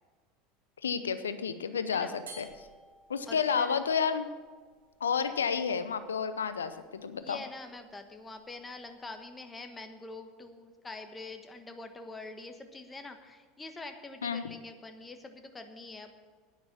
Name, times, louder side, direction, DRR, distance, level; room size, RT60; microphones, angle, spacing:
voice 1, 0.8-2.5 3.1-4.3 5.0-7.4 14.2-14.5, left 6 dB, 80° left, 12 dB, 0.7 m, -31 dB
voice 2, 1.9-2.2 3.3-3.8 7.2-16.1, left 3 dB, 15° left, 7 dB, 1.3 m, -45 dB
sound 1, 2.3-9.2, right 3 dB, 75° right, 2.6 m, -57 dB
10.5 x 9.5 x 7.3 m, 1.5 s
figure-of-eight pair, 75°, 0 cm